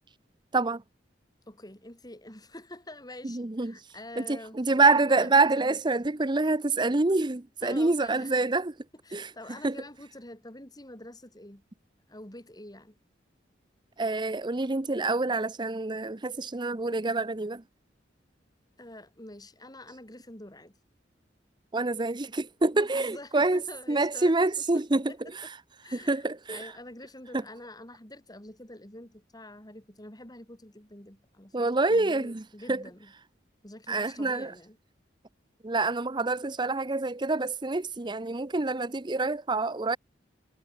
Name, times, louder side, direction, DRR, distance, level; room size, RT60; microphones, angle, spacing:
voice 1, 1.5-4.6 5.1-5.8 7.6-8.3 9.0-11.6 12.1-13.0 18.8-20.8 22.7-24.3 24.7-25.2 25.8-26.2 26.5-31.5 31.9-33.1 33.6-34.8, left 1 dB, 20° left, 4.2 m, -46 dB
voice 2, 3.2-3.8 4.2-8.7 9.1-9.3 9.6-9.8 14.0-17.6 21.7-23.6 23.9-25.5 25.9-26.6 27.3-27.4 31.5-32.4 32.7-32.8 33.9-34.5 35.6-40.0, right 3 dB, 25° right, 0.7 m, -26 dB
head